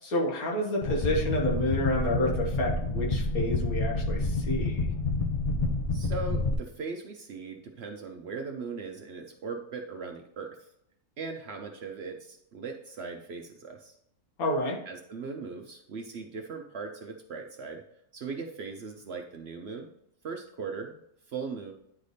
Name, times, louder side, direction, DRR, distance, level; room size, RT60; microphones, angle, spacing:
voice 1, 0.0-4.9 14.4-14.8, left 1 dB, 75° left, -2 dB, 1.8 m, -29 dB
sound 1, 0.8-6.5, left 2 dB, 60° left, 0.3 m, -29 dB
voice 2, 5.9-10.6 11.2-13.9 14.9-17.8 18.1-19.9 20.2-21.0 21.3-21.7, right 4 dB, 60° right, 4 dB, 0.7 m, -39 dB
9.7 x 3.3 x 4.1 m, 0.76 s
omnidirectional pair, 1.5 m